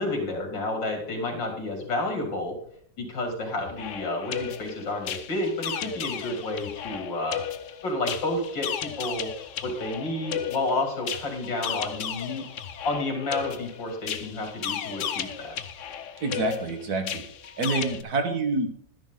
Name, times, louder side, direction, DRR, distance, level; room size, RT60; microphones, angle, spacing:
voice 1, 0.0-2.6 3.0-7.4 7.8-9.3 9.6-12.5 12.8-15.6, left 2 dB, 80° left, 2 dB, 3.4 m, -30 dB
sound 1, 3.6-18.0, left 9 dB, 60° left, 0.8 m, -35 dB
voice 2, 16.2-17.2 17.6-18.7, right 3 dB, 55° right, 6 dB, 1.8 m, -27 dB
11.5 x 10.5 x 3.8 m, 0.62 s
omnidirectional pair, 2.0 m